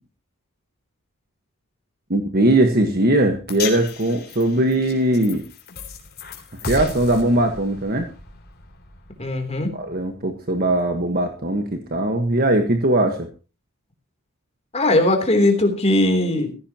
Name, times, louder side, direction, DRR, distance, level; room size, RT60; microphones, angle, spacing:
voice 1, 2.1-5.4 6.7-8.1 9.7-13.3, right 1 dB, 45° right, 5 dB, 1.5 m, -20 dB
sound 1, 3.5-9.8, left 4 dB, 45° left, 3.6 m, -36 dB
voice 2, 9.2-9.7 14.7-16.6, left 1 dB, 30° left, 4 dB, 3.4 m, -19 dB
16.0 x 15.5 x 3.0 m, 0.32 s
head